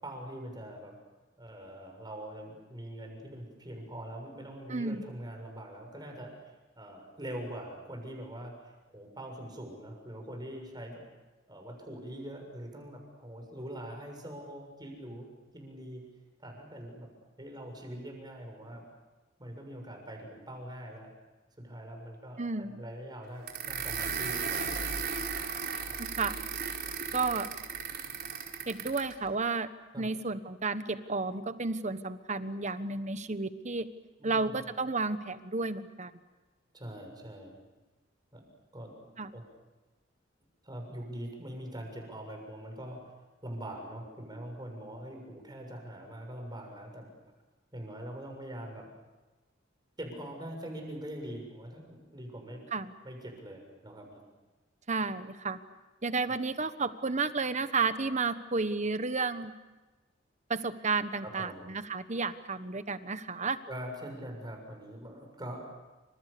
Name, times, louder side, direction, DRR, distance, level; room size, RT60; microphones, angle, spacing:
voice 1, 0.0-1.0 1.4-11.0 11.5-16.0 16.4-17.1 17.4-18.9 19.4-21.1 21.6-24.9 25.9-26.0 29.9-30.1 34.2-34.6 36.7-37.5 38.3-38.4 38.7-39.4 40.6-43.1 43.4-47.1 47.7-48.9 50.0-52.6 53.0-54.2 61.2-61.7 63.7-65.6, right 1 dB, 20° right, 3 dB, 6.9 m, -43 dB
voice 2, 4.7-5.0 22.4-22.8 26.0-26.4 27.1-27.5 28.7-29.7 30.0-33.9 34.2-36.1 39.2-39.3 52.7-52.9 54.9-55.6 56.0-59.5 60.5-63.6, right 4 dB, 40° right, 11 dB, 1.2 m, -32 dB
sound 1, 23.5-29.1, right 6 dB, 55° right, 4.8 m, -35 dB
29.0 x 26.5 x 6.9 m, 1.2 s
head